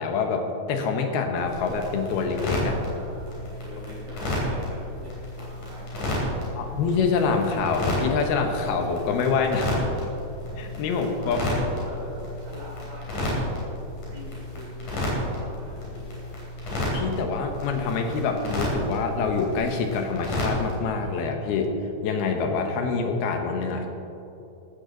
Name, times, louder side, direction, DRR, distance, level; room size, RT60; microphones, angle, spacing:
voice 1, 0.0-2.8 6.6-9.6 10.6-11.4 16.9-21.7 22.0-23.9, left 5 dB, 80° left, 4 dB, 3.1 m, -26 dB
sound 1, 1.4-20.8, left 1 dB, 50° left, 4.7 m, -31 dB
voice 2, 2.8-6.8 9.4-16.3, left 1 dB, 65° right, -5 dB, 5.3 m, -44 dB
15.5 x 13.0 x 4.0 m, 2.9 s
omnidirectional pair, 4.4 m